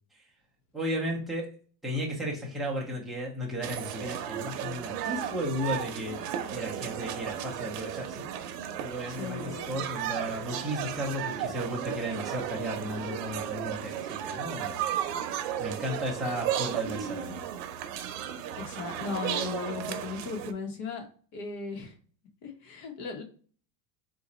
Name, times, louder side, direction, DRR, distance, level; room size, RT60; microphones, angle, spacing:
voice 1, 0.7-1.5 1.8-8.2 8.8-14.8 15.6-17.4, equal, ahead, -4 dB, 0.4 m, -34 dB
sound 1, 3.6-20.5, right 10 dB, 90° right, 0.7 m, -34 dB
voice 2, 9.1-9.8 18.6-21.1 21.3-21.9 22.4-23.2, left 5 dB, 60° left, 4 dB, 1.2 m, -37 dB
3.9 x 2.5 x 4.1 m, 0.43 s
cardioid pair, 165°, 47 cm